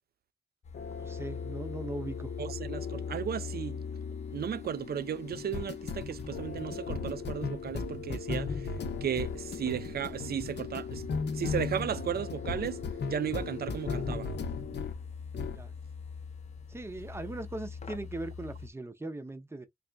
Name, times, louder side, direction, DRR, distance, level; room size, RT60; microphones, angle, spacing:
sound 1, 0.6-18.7, left 5 dB, 40° left, 0.6 m, -44 dB
sound 2, 0.7-15.0 15.3-15.6, left 5 dB, 85° left, 0.7 m, -37 dB
voice 1, 1.0-2.3 15.5-15.7 16.7-19.7, right 2 dB, 15° right, 0.6 m, -39 dB
voice 2, 2.4-3.8 4.3-8.7 9.0-11.0 11.3-12.8 13.1-14.3, right 9 dB, 65° right, 0.4 m, -35 dB
3.9 x 2.4 x 3.3 m
wide cardioid pair, 150°, 17 cm